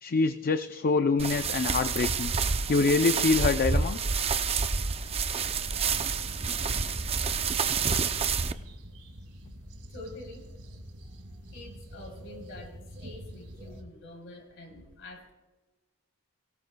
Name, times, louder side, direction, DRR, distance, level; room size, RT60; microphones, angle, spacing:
voice 1, 0.0-2.3 2.7-4.0, left 4 dB, 40° left, 9 dB, 0.4 m, -25 dB
sound 1, 1.2-8.5, right 5 dB, 25° right, 0.5 m, -28 dB
sound 2, 5.4-13.8, equal, 70° right, 2.0 m, -45 dB
voice 2, 9.9-10.5 11.5-15.3, left 2 dB, 60° left, 2 dB, 3.4 m, -46 dB
19.0 x 17.5 x 2.2 m, 1.2 s
head